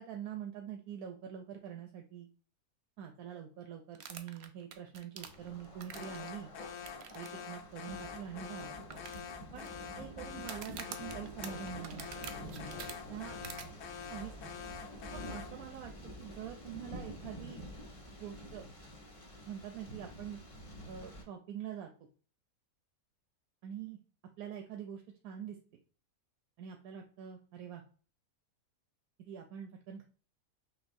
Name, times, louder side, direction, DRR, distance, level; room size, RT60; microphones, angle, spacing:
voice 1, 0.0-2.3 3.0-6.5 7.1-8.8 9.5-9.7 10.0-12.3 13.1-13.4 14.1-14.6 15.1-15.9 16.2-17.6 18.2-18.7 19.5-20.4 20.9-21.9 23.6-24.0 24.4-25.6 26.6-27.8 29.2-30.1, right 9 dB, 90° right, 3 dB, 1.1 m, -45 dB
sound 1, 3.9-6.3 6.9-7.3 7.5-7.6 8.2-8.3 8.9-9.7 10.4-12.9 13.4-13.6, right 7 dB, 60° right, 0.7 m, -46 dB
Thunder, 5.2-21.2, equal, 30° left, 0.7 m, -48 dB
Alarm, 5.9-15.6, left 7 dB, 65° left, 0.7 m, -46 dB
6.1 x 2.4 x 2.6 m, 0.40 s
omnidirectional pair, 1.5 m